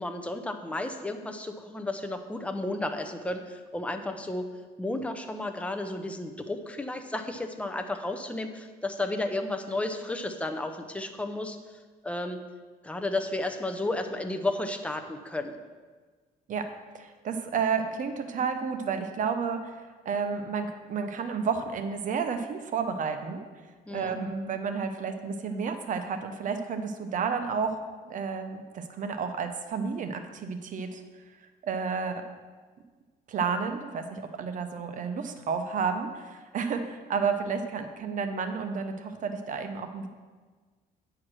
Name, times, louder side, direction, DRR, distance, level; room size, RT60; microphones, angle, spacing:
voice 1, 0.0-4.5 4.8-11.6 12.0-12.4 12.8-15.6 23.9-24.2, left 2 dB, 5° left, 5 dB, 0.7 m, -33 dB
voice 2, 16.9-23.4 23.9-27.8 28.0-31.0 31.6-32.2 33.3-40.1, right 5 dB, 50° right, 7 dB, 0.9 m, -31 dB
8.8 x 4.8 x 6.3 m, 1.4 s
cardioid pair, 110°, 17 cm